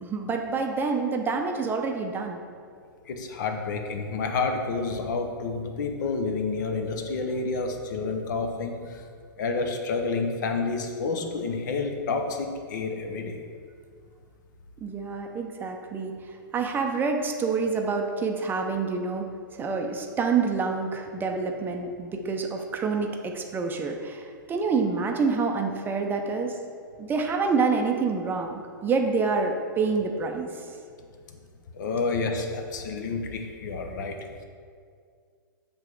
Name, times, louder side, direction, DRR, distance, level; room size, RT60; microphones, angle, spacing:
voice 1, 0.0-2.4 14.8-19.2 19.5-26.5 27.0-30.7, right 4 dB, 15° right, 2 dB, 0.6 m, -27 dB
voice 2, 3.1-9.0 9.4-13.4 31.7-34.4, left 4 dB, 55° left, 5 dB, 0.8 m, -29 dB
7.6 x 3.4 x 4.5 m, 2.1 s
figure-of-eight pair, 105°, 12 cm